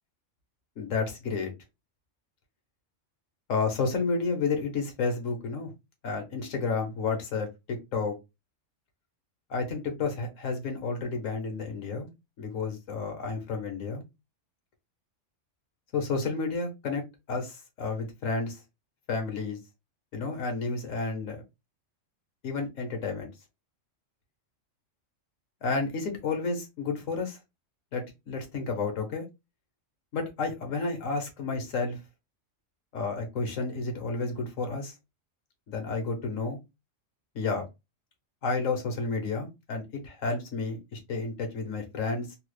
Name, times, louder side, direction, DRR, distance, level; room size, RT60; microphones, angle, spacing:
voice 1, 0.8-1.5 3.5-5.7 6.0-7.5 7.9-8.2 9.5-12.1 12.4-14.0 15.9-18.6 19.1-19.6 20.1-21.4 22.4-23.3 25.6-27.4 27.9-29.2 30.1-32.0 32.9-34.9 35.7-36.6 37.3-37.7 38.4-42.4, left 4 dB, 85° left, 1.4 m, -31 dB
3.5 x 2.1 x 3.2 m
omnidirectional pair, 1.3 m